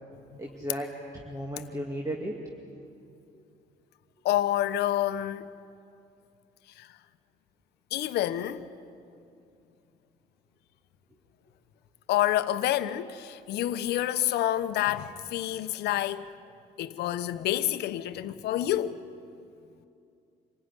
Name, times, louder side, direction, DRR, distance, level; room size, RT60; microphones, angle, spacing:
voice 1, 0.4-2.3 3.3-3.4, equal, 20° right, 2.2 m, -35 dB
voice 2, 4.2-5.5 6.8-6.9 7.9-8.7 12.1-16.2 16.8-19.0, left 13 dB, 75° left, 1.0 m, -28 dB
26.5 x 17.5 x 9.9 m
cardioid pair, 110°, 17 cm